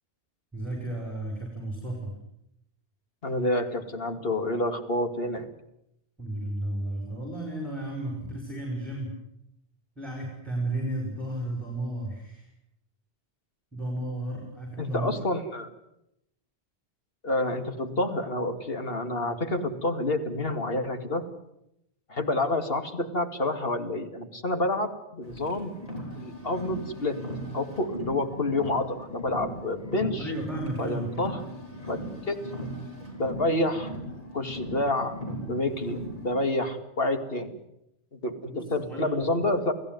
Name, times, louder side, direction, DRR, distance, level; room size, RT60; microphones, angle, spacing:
voice 1, 0.5-2.1 6.2-9.1 10.0-12.5 13.7-15.2 30.2-31.2 38.5-39.1, right 1 dB, ahead, 1 dB, 6.0 m, -33 dB
voice 2, 3.2-5.5 14.8-15.7 17.2-21.3 22.1-25.7 26.2-27.2 27.5-30.3 30.8-31.4 31.9-32.0 32.3-32.4 33.2-33.9 34.3-35.2 35.5-37.6 38.1-39.7, left 1 dB, 55° left, 7 dB, 2.6 m, -28 dB
Car, 25.2-36.3, equal, 35° left, 7.2 m, -38 dB
29.0 x 17.0 x 9.5 m, 0.82 s
omnidirectional pair, 1.1 m